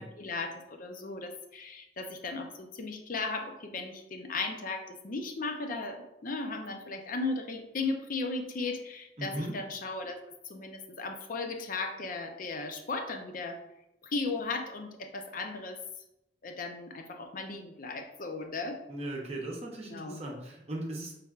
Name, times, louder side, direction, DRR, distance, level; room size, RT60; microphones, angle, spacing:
voice 1, 0.0-10.2 10.5-13.6 14.0-15.8 16.4-18.8 19.9-20.2, left 3 dB, 50° left, 5 dB, 0.6 m, -36 dB
voice 2, 9.2-9.5 18.9-21.1, right 1 dB, 35° right, -1 dB, 0.8 m, -37 dB
5.6 x 3.3 x 2.4 m, 0.86 s
head